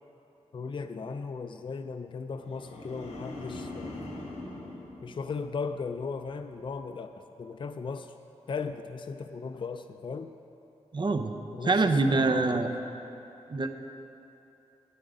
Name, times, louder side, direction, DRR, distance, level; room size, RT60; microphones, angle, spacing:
voice 1, 0.5-4.1 5.0-8.1 8.5-10.3 11.5-12.6, left 4 dB, 45° left, 8 dB, 0.4 m, -37 dB
Monster growl Reverb, 2.4-5.8 6.2-6.6, left 2 dB, 70° left, 2.5 m, -42 dB
voice 2, 10.9-11.3 11.6-12.7 13.5-13.7, right 3 dB, 40° right, 7 dB, 0.8 m, -25 dB
13.5 x 9.3 x 5.0 m, 2.9 s
wide cardioid pair, 80°, 12 cm